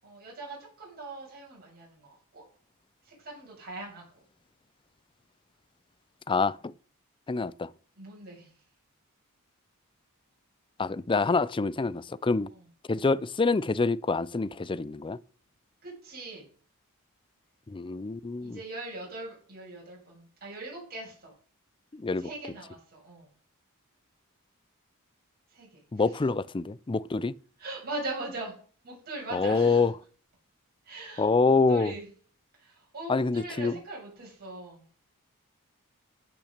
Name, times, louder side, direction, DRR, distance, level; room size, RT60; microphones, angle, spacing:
voice 1, 0.0-2.5 3.0-4.2 7.9-8.5 15.8-16.5 18.4-21.3 22.1-23.3 25.5-25.7 26.0-26.1 27.6-28.5 28.8-29.9 30.8-32.1 32.6-34.9, right 2 dB, 45° right, 6.9 m, -41 dB
voice 2, 6.3-6.7 7.3-7.7 10.8-12.5 12.9-15.2 17.7-18.6 21.9-22.3 25.9-27.3 29.3-29.9 31.2-31.9 33.1-33.8, left 4 dB, 25° left, 0.4 m, -26 dB
15.0 x 6.1 x 6.6 m
head